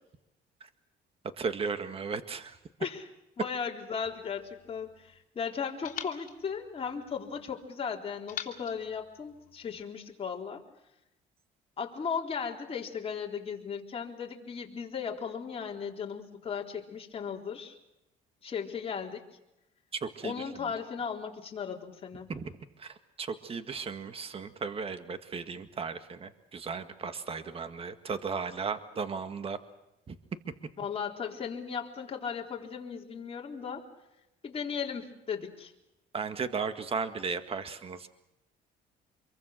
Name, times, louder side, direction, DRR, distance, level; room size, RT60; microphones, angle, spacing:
voice 1, 1.4-2.6 19.9-20.7 22.3-22.5 22.8-29.6 30.1-30.2 36.1-38.1, right 5 dB, 35° right, 9 dB, 1.9 m, -36 dB
voice 2, 3.4-10.6 11.8-17.8 18.4-19.3 20.2-22.3 30.8-33.9 34.4-35.7, left 6 dB, 35° left, 0 dB, 3.9 m, -36 dB
sound 1, 4.0-5.3 5.8-7.5 8.3-9.9, left 7 dB, 50° left, 3.6 m, -46 dB
27.0 x 23.0 x 6.6 m, 0.89 s
cardioid pair, 110°, 17 cm